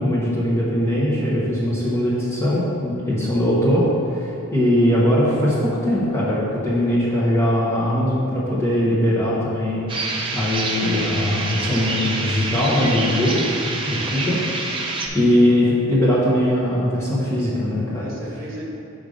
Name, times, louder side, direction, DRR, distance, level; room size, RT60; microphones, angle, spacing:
voice 1, 0.0-9.8 10.3-13.4 13.8-14.4 15.1-18.0, left 1 dB, 10° left, -8 dB, 0.9 m, -20 dB
sound 1, 9.9-15.1, right 3 dB, 25° right, 0.5 m, -27 dB
voice 2, 13.9-14.9 17.9-18.6, equal, 40° right, -4 dB, 1.4 m, -37 dB
5.2 x 5.2 x 5.0 m, 2.6 s
head